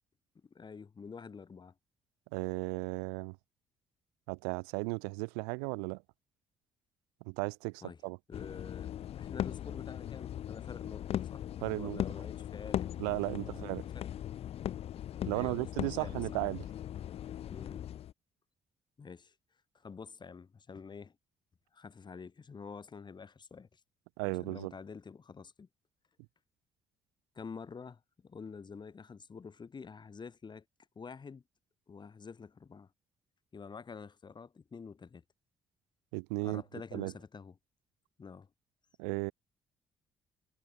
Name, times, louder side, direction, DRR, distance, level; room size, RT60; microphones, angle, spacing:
voice 1, 0.4-1.7 7.8-8.0 8.3-11.4 11.8-12.9 13.2-13.7 13.9-14.1 15.3-16.2 17.5-17.9 19.0-19.3 19.7-21.2 21.7-23.8 24.2-25.7 27.4-30.6 31.0-31.4 31.9-32.9 33.5-35.2 36.4-37.5 38.2-38.5, left 5 dB, 35° left, 5.6 m, -48 dB
voice 2, 2.3-3.4 4.3-6.0 7.3-8.2 11.6-12.0 13.0-13.9 15.3-16.6 24.2-24.7 36.1-36.6 36.9-37.1 39.0-39.3, right 40 dB or more, 70° right, 1.8 m, -35 dB
sound 1, 8.3-18.1, left 11 dB, 55° left, 1.3 m, -39 dB
figure-of-eight pair, 45°, 12 cm